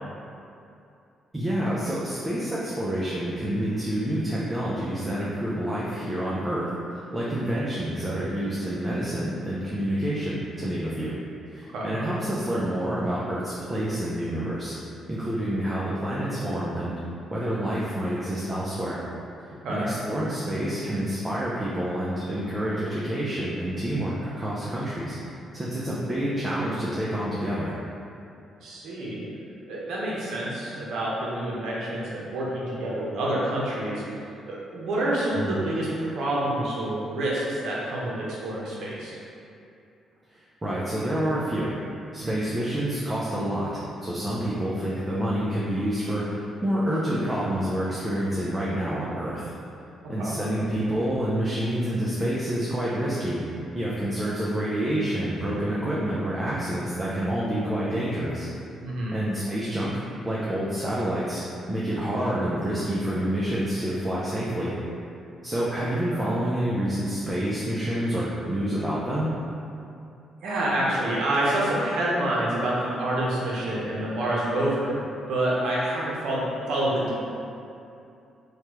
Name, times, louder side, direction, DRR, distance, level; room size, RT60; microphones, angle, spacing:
voice 1, 1.3-6.7 7.1-11.1 11.5-14.7 15.1-16.9 17.3-19.0 19.7-25.2 25.5-27.7 35.4-35.5 40.6-41.7 42.1-43.7 44.0-49.5 50.1-53.4 53.7-58.5 59.1-60.0 60.3-61.4 61.7-64.8 65.4-69.3 74.0-74.1, right 1 dB, 20° right, -7 dB, 0.4 m, -28 dB
voice 2, 28.6-29.2 29.7-34.0 34.4-39.2 42.2-42.4 50.2-50.4 58.8-59.2 65.8-66.2 70.4-74.9 75.3-77.2, right 1 dB, 75° right, -5 dB, 0.7 m, -27 dB
3.1 x 2.2 x 2.9 m, 2.6 s
cardioid pair, 90°, 0 cm